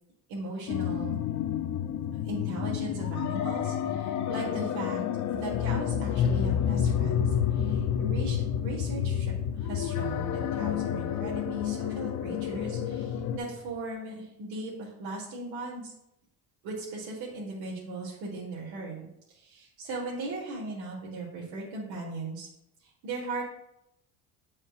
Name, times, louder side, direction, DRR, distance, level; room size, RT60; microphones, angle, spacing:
voice 1, 0.3-1.1 2.2-5.0 5.3-15.9 16.6-22.5 22.8-23.4, right 2 dB, 80° right, -4 dB, 1.6 m, -38 dB
sound 1, 0.7-13.4, left 9 dB, 50° left, 0.5 m, -29 dB
9.3 x 4.3 x 2.4 m, 0.84 s
cardioid pair, 110°, 38 cm